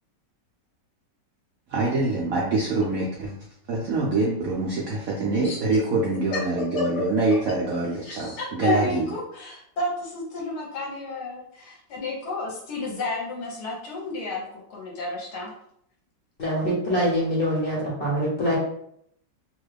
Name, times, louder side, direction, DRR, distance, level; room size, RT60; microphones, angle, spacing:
voice 1, 1.7-3.4 3.7-9.1, right 3 dB, 70° right, -4 dB, 0.8 m, -25 dB
voice 2, 8.0-15.5, left 3 dB, 65° left, -2 dB, 1.2 m, -31 dB
voice 3, 16.4-18.5, equal, 40° left, -5 dB, 0.9 m, -24 dB
3.0 x 2.3 x 3.3 m, 0.70 s
omnidirectional pair, 2.0 m